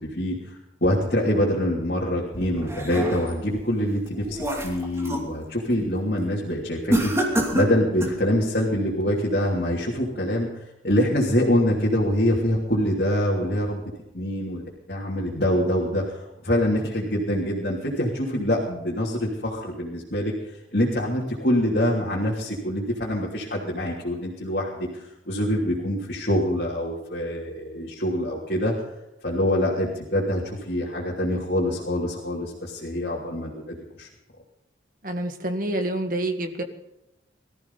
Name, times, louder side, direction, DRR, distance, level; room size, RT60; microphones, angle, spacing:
voice 1, 0.0-10.5 10.8-13.8 14.1-20.3 20.7-28.7 29.2-34.1, equal, 50° left, -4 dB, 3.1 m, -25 dB
sound 1, 2.3-3.5 4.0-5.3 5.7-6.0 6.9-8.3, right 1 dB, 15° right, 2.6 m, -27 dB
voice 2, 35.0-36.6, right 1 dB, 45° right, 6 dB, 1.9 m, -27 dB
20.5 x 14.0 x 4.1 m, 0.91 s
head